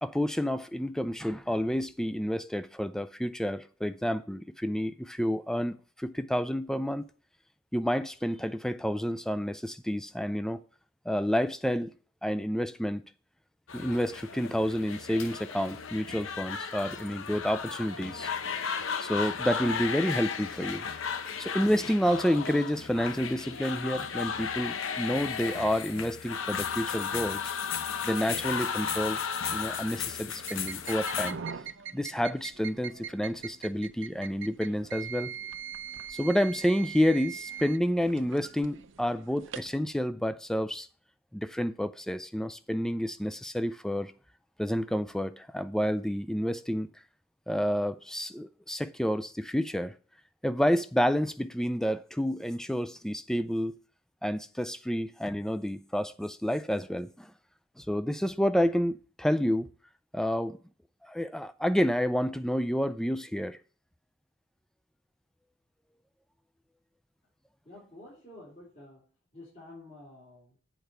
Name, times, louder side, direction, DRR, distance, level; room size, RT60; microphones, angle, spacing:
voice 1, 0.0-7.1 7.7-10.6 11.1-11.9 12.2-13.0 13.7-18.3 19.0-20.8 21.4-27.4 28.0-29.2 29.5-31.4 31.9-35.3 36.1-40.9 41.3-44.1 44.6-46.9 47.5-49.9 50.4-53.8 54.2-57.3 57.8-59.7 60.1-60.6 61.1-63.6, equal, 5° left, 0.3 m, -29 dB
sound 1, 13.7-31.3, left 6 dB, 70° left, 0.8 m, -34 dB
sound 2, 30.4-39.8, right 8 dB, 60° right, 0.5 m, -42 dB
voice 2, 67.6-69.0 69.3-70.6, left 2 dB, 35° left, 3.7 m, -50 dB
8.5 x 4.5 x 6.8 m
head